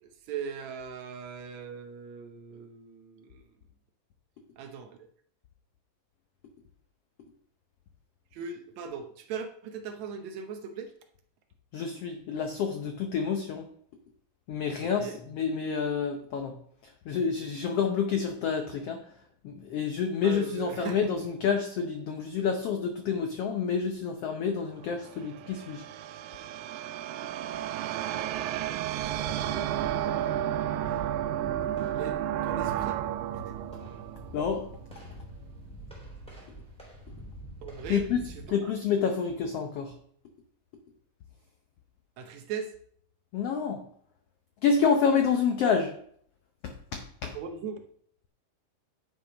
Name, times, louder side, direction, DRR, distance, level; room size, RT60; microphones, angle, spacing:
voice 1, 0.0-3.4 4.6-5.0 8.3-10.9 14.8-15.2 20.2-21.1 29.4-31.0 31.9-33.0 37.6-38.7 42.2-42.7 47.3-47.8, right 6 dB, 70° right, 6 dB, 1.9 m, -39 dB
voice 2, 11.7-13.7 14.5-16.5 16.8-19.0 19.4-25.8 34.3-34.7 37.9-38.2 38.5-39.9 43.3-43.8 44.6-45.9 46.6-47.3, left 6 dB, 80° left, 5 dB, 1.3 m, -28 dB
sound 1, 24.8-35.1, right 12 dB, 85° right, 2.3 m, -32 dB
sound 2, 29.0-38.4, equal, ahead, 3.0 m, -45 dB
10.0 x 6.1 x 5.1 m, 0.63 s
omnidirectional pair, 3.9 m